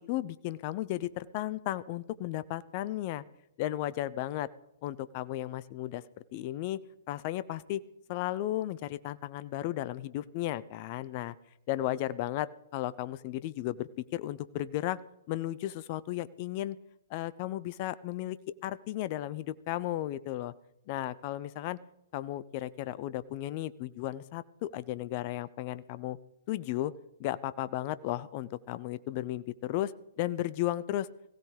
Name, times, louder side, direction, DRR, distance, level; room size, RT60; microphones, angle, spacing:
voice 1, 0.0-3.2 3.6-4.5 4.8-6.0 6.3-6.8 7.1-7.8 8.1-11.3 11.7-15.0 15.3-16.8 17.1-18.4 18.6-20.5 20.9-21.8 22.1-26.2 26.5-26.9 27.2-29.9 30.2-31.1, left 14 dB, 35° left, 17 dB, 0.6 m, -34 dB
21.5 x 16.0 x 3.3 m, 0.85 s
figure-of-eight pair, 120°, 0 cm